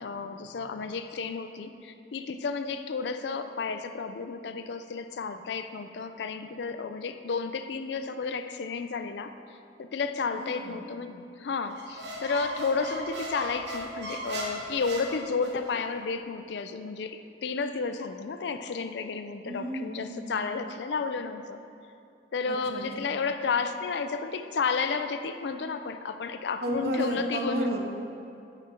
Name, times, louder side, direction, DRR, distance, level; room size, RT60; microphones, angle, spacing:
voice 1, 0.0-9.3 9.8-21.6 22.3-27.6, left 4 dB, 80° left, 8 dB, 0.4 m, -32 dB
voice 2, 10.3-10.8 19.4-20.6 22.4-23.1 26.6-27.8, equal, 60° right, 1 dB, 0.8 m, -33 dB
Squeak, 11.7-15.7, right 1 dB, 75° right, 1.1 m, -37 dB
8.8 x 5.0 x 4.3 m, 2.6 s
head